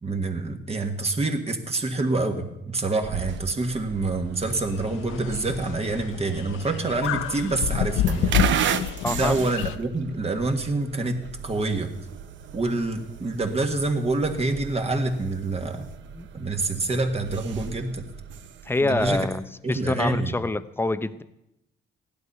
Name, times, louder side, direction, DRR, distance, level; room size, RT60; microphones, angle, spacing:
voice 1, 0.0-8.4 9.1-11.9 12.5-15.9 16.3-18.0 18.8-19.3 19.6-20.3, right 2 dB, 30° right, 4 dB, 1.7 m, -27 dB
sound 1, 3.0-19.2, right 9 dB, 70° right, 0.8 m, -35 dB
sound 2, 4.4-9.8, left 10 dB, 85° left, 0.6 m, -28 dB
voice 2, 9.0-9.5 16.1-16.3 18.6-21.2, left 2 dB, 10° left, 14 dB, 0.7 m, -26 dB
15.0 x 11.5 x 5.6 m, 0.86 s
cardioid pair, 90°, 20 cm